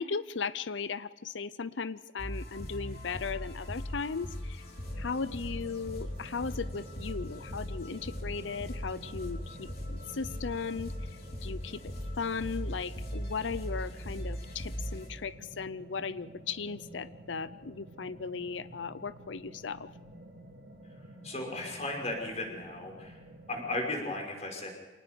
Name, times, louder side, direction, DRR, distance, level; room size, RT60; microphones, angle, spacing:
voice 1, 0.0-4.6 5.0-10.9 11.4-11.8 12.2-19.9, left 5 dB, 85° left, 16 dB, 0.7 m, -37 dB
sound 1, 2.2-15.1, equal, 55° left, 3.8 m, -39 dB
sound 2, 4.8-23.8, right 1 dB, 65° right, 3.1 m, -51 dB
voice 2, 21.2-23.2 23.5-24.7, left 2 dB, 40° left, 1 dB, 5.6 m, -35 dB
26.5 x 19.0 x 5.3 m, 1.2 s
head